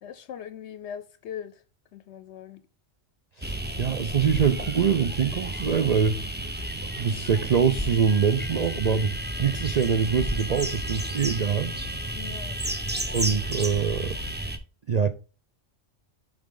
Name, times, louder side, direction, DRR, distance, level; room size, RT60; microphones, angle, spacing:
voice 1, 0.0-1.5 1.9-2.6 12.1-12.6, left 9 dB, 70° left, 0.8 m, -40 dB
sound 1, 3.4-14.6, right 1 dB, 10° right, 0.6 m, -32 dB
voice 2, 3.4-6.2 7.0-11.7 13.1-14.2 14.9-15.1, right 6 dB, 60° right, 0.4 m, -24 dB
7.1 x 5.1 x 3.7 m
omnidirectional pair, 1.3 m